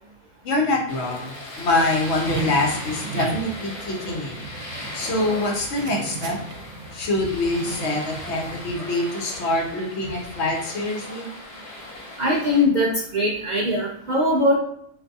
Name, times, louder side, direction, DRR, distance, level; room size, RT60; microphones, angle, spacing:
voice 1, 0.4-4.4 4.9-6.4 6.9-11.3, left 2 dB, 65° left, 1 dB, 0.9 m, -25 dB
sound 1, 0.9-12.6, left 2 dB, 40° left, 0.5 m, -38 dB
sound 2, 1.1-8.7, right 4 dB, 80° right, 0.9 m, -36 dB
voice 2, 12.2-14.5, left 1 dB, 60° right, -3 dB, 0.5 m, -21 dB
3.4 x 2.5 x 2.6 m, 0.71 s
omnidirectional pair, 1.3 m